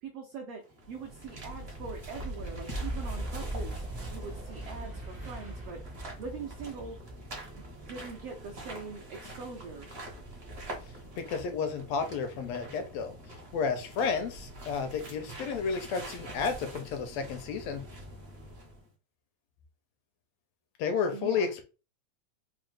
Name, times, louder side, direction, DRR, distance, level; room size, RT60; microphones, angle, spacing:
voice 1, 0.0-3.8 4.1-5.8 6.2-7.0 7.6-9.9 21.1-21.5, right 5 dB, 85° right, 3 dB, 1.3 m, -42 dB
sound 1, 0.6-18.9, right 1 dB, 65° right, 0.5 m, -45 dB
Boom, 2.7-9.2, right 1 dB, 10° right, 0.4 m, -40 dB
voice 2, 10.8-17.8 20.8-21.6, left 5 dB, 80° left, 7 dB, 1.6 m, -32 dB
4.7 x 2.0 x 3.2 m, 0.33 s
omnidirectional pair, 3.4 m